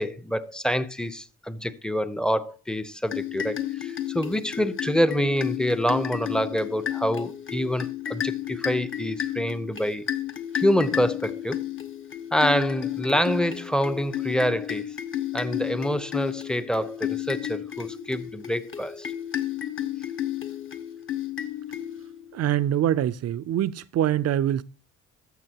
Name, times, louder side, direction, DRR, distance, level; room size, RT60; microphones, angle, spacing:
voice 1, 0.0-10.1 10.5-11.6 12.3-14.9 15.3-19.1, equal, 5° left, 0.7 m, -26 dB
sound 1, 3.1-22.3, left 11 dB, 40° left, 1.1 m, -32 dB
voice 2, 22.3-24.6, right 11 dB, 55° right, 0.5 m, -24 dB
14.0 x 6.2 x 2.9 m
cardioid pair, 90°, 30 cm